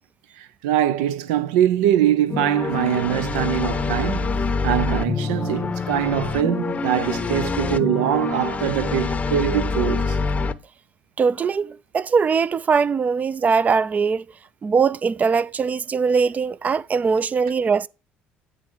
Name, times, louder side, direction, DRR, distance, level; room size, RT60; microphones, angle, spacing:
voice 1, 0.4-10.2, right 11 dB, 90° right, 0.5 m, -23 dB
sound 1, 2.3-10.5, left 4 dB, 30° left, 0.6 m, -25 dB
voice 2, 11.2-14.2 14.6-17.9, right 5 dB, 35° right, 0.4 m, -21 dB
9.4 x 3.7 x 6.4 m
supercardioid pair, 75°, 5 cm